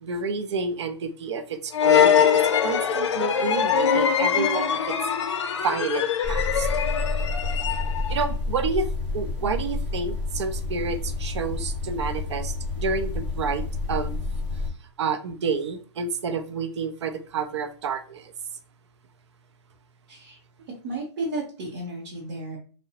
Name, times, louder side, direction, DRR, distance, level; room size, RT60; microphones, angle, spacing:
voice 1, 0.0-5.0 5.6-6.7 8.1-14.3 15.0-18.3, right 5 dB, 65° right, 0.4 m, -29 dB
sound 1, 1.7-8.2, left 8 dB, 70° left, 0.4 m, -22 dB
sound 2, 6.2-14.7, left 3 dB, 5° right, 0.5 m, -29 dB
voice 2, 20.1-20.4 20.8-22.6, right 2 dB, 40° right, 0.8 m, -33 dB
2.7 x 2.0 x 2.7 m
hypercardioid pair, 160°, 15 cm